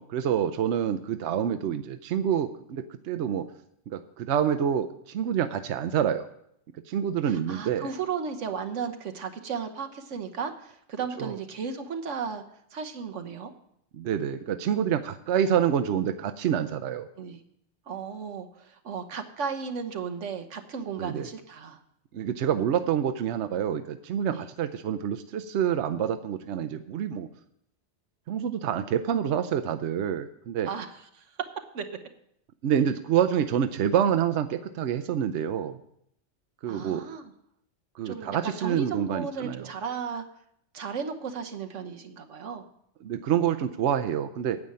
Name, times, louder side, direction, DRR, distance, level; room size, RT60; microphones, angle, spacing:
voice 1, 0.0-3.5 3.9-6.3 6.9-7.9 11.2-11.3 13.9-17.1 21.0-21.3 22.1-27.3 28.3-30.7 32.6-35.8 36.6-37.0 38.0-39.7 43.0-44.6, right 9 dB, 70° right, 9 dB, 0.9 m, -27 dB
voice 2, 7.2-12.4 12.7-13.5 17.2-17.4 17.9-21.8 24.3-24.5 30.7-31.3 31.7-31.8 36.7-37.3 38.0-40.2 40.7-42.6, right 6 dB, 90° right, 7 dB, 1.4 m, -35 dB
9.7 x 6.9 x 8.6 m, 0.73 s
omnidirectional pair, 1.2 m